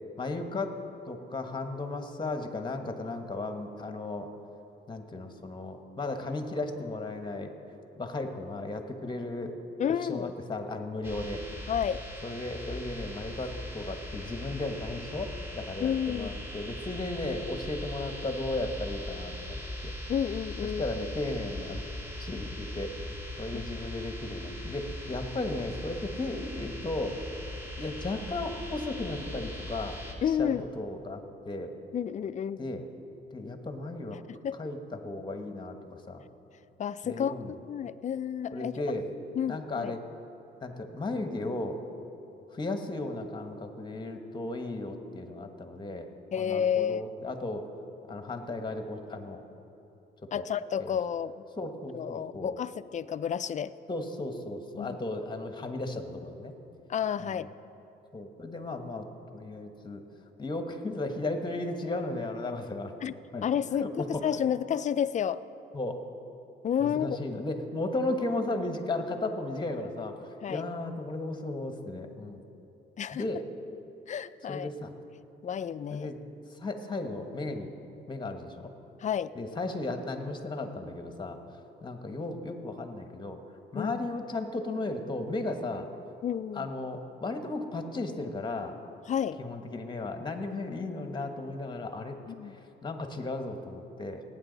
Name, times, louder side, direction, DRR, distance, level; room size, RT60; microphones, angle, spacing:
voice 1, 0.2-0.7 1.1-4.3 4.9-7.5 8.0-9.5 9.9-11.4 12.2-19.9 20.6-21.8 22.2-27.2 27.8-30.0 30.3-31.7 32.6-32.8 33.3-34.2 34.6-36.3 37.0-37.5 38.5-39.1 39.5-40.0 40.6-41.8 42.5-47.7 48.1-49.4 50.3-50.4 50.8-51.0 51.6-52.6 53.9-56.5 57.2-57.4 58.1-59.1 59.3-60.0 60.4-63.4 63.8-64.3 65.7-66.0 66.8-72.4 73.1-73.4 74.5-74.9 75.9-76.2 76.5-77.7 78.1-78.7 79.3-81.4 81.8-83.4 83.7-85.9 86.5-88.8 89.4-92.2 92.5-94.2, left 2 dB, 20° left, 6 dB, 1.2 m, -35 dB
voice 2, 9.8-10.3 11.7-12.0 15.8-16.3 20.1-20.8 30.2-30.6 31.9-32.7 34.4-34.6 36.8-37.3 37.7-38.8 39.4-39.9 46.3-47.0 50.3-51.3 51.9-53.7 54.8-55.0 56.9-57.5 63.0-63.1 63.4-65.4 66.6-67.2 70.4-70.6 73.0-73.2 74.1-74.7 75.4-76.1 79.0-79.3 83.7-84.0 86.2-86.7 89.1-89.4 92.3-92.6, left 8 dB, 40° left, 14 dB, 0.4 m, -30 dB
sound 1, 11.0-30.1, left 1 dB, 10° right, 1.9 m, -40 dB
18.5 x 9.0 x 4.0 m, 2.9 s
cardioid pair, 90°, 20 cm